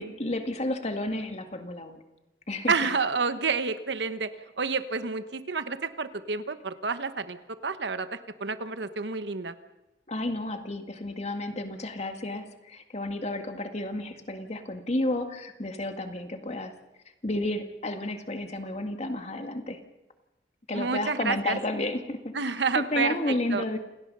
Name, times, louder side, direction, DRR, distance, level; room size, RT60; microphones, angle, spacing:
voice 1, 0.0-2.0 2.5-2.7 10.1-16.7 17.2-19.8 20.7-23.8, left 1 dB, 40° left, 6 dB, 2.0 m, -32 dB
voice 2, 2.7-4.3 4.6-7.4 7.6-9.5 20.7-21.6 22.3-23.2 23.5-23.6, right 4 dB, 80° right, 11 dB, 1.2 m, -29 dB
28.5 x 18.0 x 5.5 m, 0.99 s
head